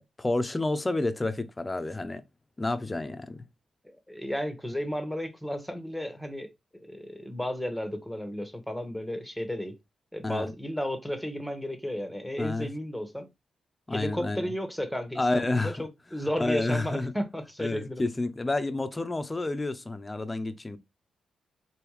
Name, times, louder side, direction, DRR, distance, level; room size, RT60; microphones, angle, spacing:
voice 1, 0.0-2.2 2.6-3.4 10.2-10.5 12.4-12.7 13.9-14.5 15.2-15.8 16.4-17.1 17.6-20.8, left 2 dB, 25° left, 0.5 m, -29 dB
voice 2, 4.1-9.8 10.1-13.3 13.9-18.0, equal, ahead, 1.0 m, -33 dB
3.4 x 2.7 x 3.1 m
supercardioid pair, 55°, 0 cm